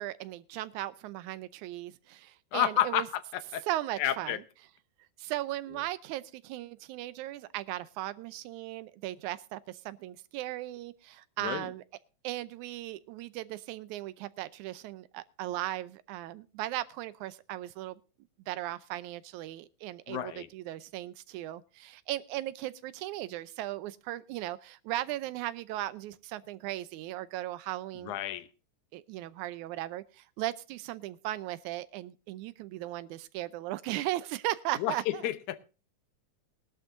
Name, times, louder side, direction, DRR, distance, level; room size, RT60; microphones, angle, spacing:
voice 1, 0.0-3.1 3.7-4.4 5.2-11.8 12.2-18.0 18.5-28.2 28.9-35.2, right 15 dB, 80° right, 2.1 m, -37 dB
voice 2, 2.5-3.0 3.3-3.6 4.0-4.4 11.4-11.7 20.1-20.5 28.1-28.5 34.8-35.6, left 12 dB, 80° left, 2.3 m, -30 dB
20.0 x 12.0 x 2.6 m
omnidirectional pair, 3.5 m